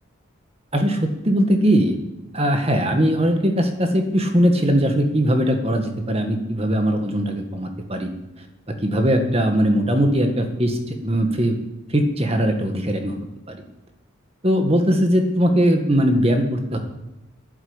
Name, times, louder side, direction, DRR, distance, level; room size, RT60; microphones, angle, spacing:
voice 1, 1.2-1.9 2.3-8.1 8.8-11.6 11.9-13.1 13.5-13.6 14.4-16.8, equal, 30° right, 5 dB, 1.7 m, -20 dB
12.0 x 10.5 x 8.9 m, 1.0 s
head